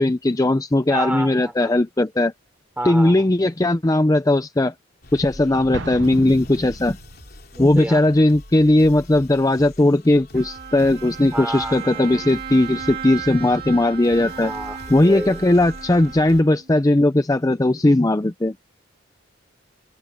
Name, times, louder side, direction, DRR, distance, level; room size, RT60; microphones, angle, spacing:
voice 1, 0.0-2.3 2.8-4.7 5.1-7.0 7.6-14.5 14.9-18.5, left 1 dB, 15° left, 0.5 m, -18 dB
voice 2, 0.9-1.7 2.8-3.2 5.4-5.7 7.5-8.0 11.3-12.3 14.2-15.4, right 1 dB, 10° right, 3.3 m, -31 dB
sound 1, 5.0-16.4, left 1 dB, 50° left, 3.3 m, -43 dB
Explosion, 5.7-7.3, right 3 dB, 65° right, 0.7 m, -34 dB
Bowed string instrument, 10.3-16.8, right 7 dB, 45° right, 3.5 m, -36 dB
head